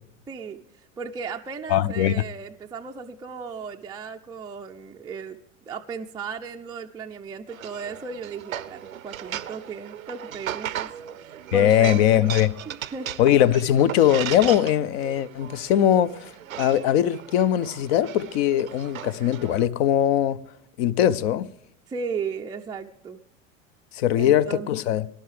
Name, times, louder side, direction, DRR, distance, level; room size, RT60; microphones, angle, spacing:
voice 1, 0.3-5.4 5.7-10.9 11.2-12.3 12.7-13.1 21.9-23.2 24.2-24.7, right 5 dB, 10° right, 0.4 m, -36 dB
voice 2, 1.7-2.2 11.5-12.5 13.2-16.3 16.6-20.4 20.8-21.5 23.9-25.1, left 11 dB, 50° left, 0.6 m, -21 dB
sound 1, 7.5-19.7, right 10 dB, 80° right, 0.6 m, -37 dB
20.0 x 11.5 x 3.3 m
figure-of-eight pair, 75°, 40 cm